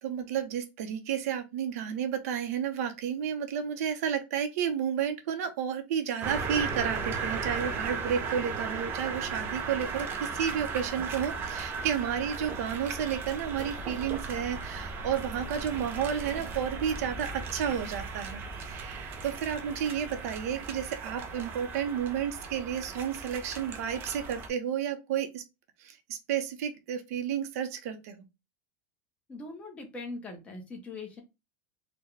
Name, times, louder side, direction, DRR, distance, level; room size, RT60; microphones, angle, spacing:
voice 1, 0.0-25.4 25.8-28.2, right 8 dB, 65° right, 8 dB, 0.8 m, -32 dB
sound 1, 6.2-24.5, right 4 dB, 25° right, 0.5 m, -36 dB
voice 2, 29.3-31.2, left 3 dB, 15° left, 3 dB, 0.7 m, -41 dB
3.9 x 2.2 x 3.2 m, 0.24 s
supercardioid pair, 170°, 9 cm